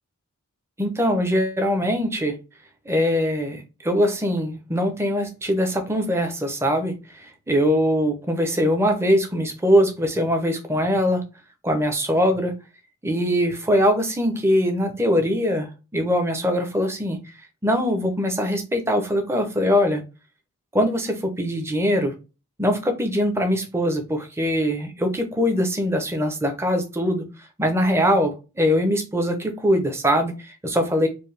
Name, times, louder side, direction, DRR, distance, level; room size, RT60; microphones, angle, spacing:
voice 1, 0.8-2.4 2.9-11.2 11.6-12.5 13.0-17.2 17.6-20.0 20.7-22.1 22.6-27.2 27.6-31.1, equal, 10° right, 5 dB, 0.6 m, -22 dB
4.5 x 2.2 x 3.3 m, 0.30 s
head